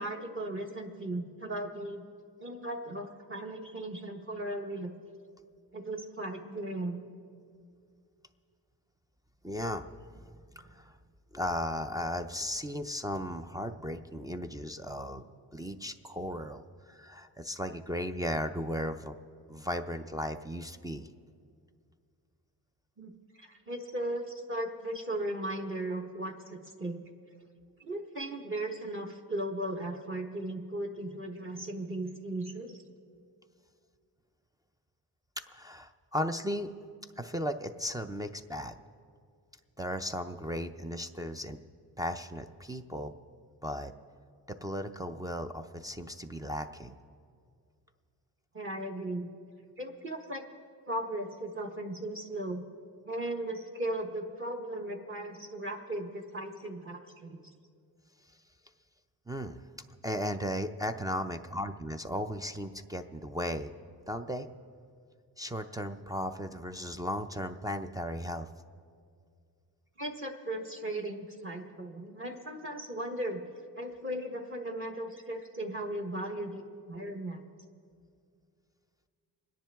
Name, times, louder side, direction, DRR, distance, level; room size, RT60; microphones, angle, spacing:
voice 1, 0.0-2.0 2.4-4.9 5.7-7.0 23.0-23.1 23.4-27.0 27.8-32.7 48.5-49.3 49.8-50.4 50.9-52.6 53.0-57.5 70.0-73.4 73.7-76.6 76.9-77.5, right 1 dB, 30° right, 1 dB, 1.1 m, -37 dB
voice 2, 9.4-9.9 10.1-11.0 11.3-15.2 15.5-19.1 19.5-21.1 35.5-36.7 37.2-38.7 39.8-41.6 42.0-43.1 43.6-43.9 44.5-47.0 59.3-59.7 60.0-63.7 64.1-64.5 65.4-68.5, equal, 10° right, 4 dB, 0.3 m, -36 dB
28.0 x 10.5 x 3.4 m, 2.2 s
cardioid pair, 130°, 39 cm